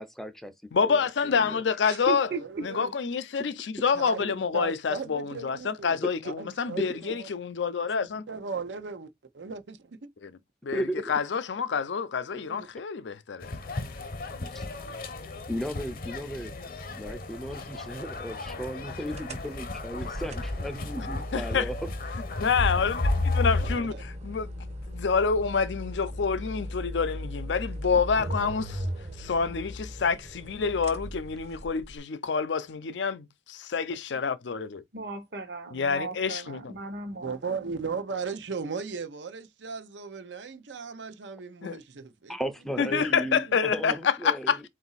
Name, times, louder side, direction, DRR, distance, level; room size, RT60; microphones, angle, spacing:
voice 1, 0.0-0.5 0.8-1.6 6.8-6.9 10.7-11.0 14.5-14.6 15.5-16.5 17.0-21.7 42.3-44.6, equal, ahead, 0.5 m, -35 dB
voice 2, 0.7-2.3 2.6-8.3 10.2-10.3 10.6-13.6 21.3-21.7 22.4-23.0 23.3-28.9 29.2-34.8 35.7-36.8 41.6-41.8 42.8-44.6, left 5 dB, 85° left, 0.5 m, -28 dB
voice 3, 1.8-2.4 34.9-37.6, right 3 dB, 65° right, 1.0 m, -36 dB
voice 4, 2.4-2.9 3.9-7.3 8.3-10.1 12.3-12.7 23.6-24.1 37.1-42.4 42.8-43.5, right 5 dB, 85° right, 0.7 m, -37 dB
sound 1, 13.4-23.8, left 2 dB, 55° left, 0.8 m, -33 dB
sound 2, 19.1-32.0, equal, 40° right, 0.7 m, -38 dB
4.0 x 2.5 x 3.9 m
head